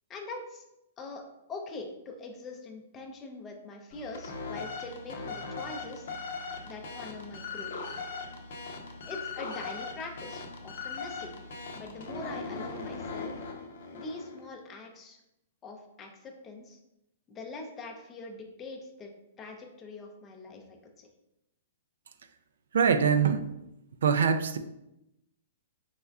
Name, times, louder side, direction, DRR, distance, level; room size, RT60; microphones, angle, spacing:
voice 1, 0.1-0.6 1.0-1.2 1.5-6.1 6.7-7.7 9.0-11.4 11.7-13.3 13.9-15.2 15.6-16.8 17.3-19.1 19.4-21.1, left 3 dB, 20° left, 2 dB, 0.5 m, -43 dB
sound 1, 3.9-14.5, left 4 dB, 65° left, 0.7 m, -39 dB
voice 2, 22.7-23.5 24.0-24.6, right 6 dB, 80° right, 10 dB, 0.3 m, -23 dB
4.2 x 3.3 x 2.3 m, 0.87 s
hypercardioid pair, 155°, 0 cm